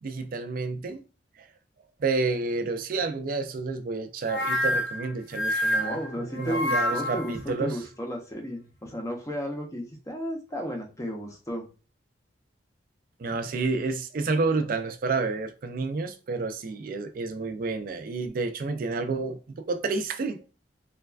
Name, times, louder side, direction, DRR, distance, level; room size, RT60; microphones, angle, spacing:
voice 1, 0.0-1.0 2.0-7.8 13.2-20.5, right 3 dB, 50° right, 0.4 m, -30 dB
sound 1, 4.3-7.4, left 1 dB, 75° left, 0.7 m, -27 dB
voice 2, 5.8-11.6, equal, 20° left, 0.5 m, -33 dB
3.2 x 2.3 x 2.3 m
head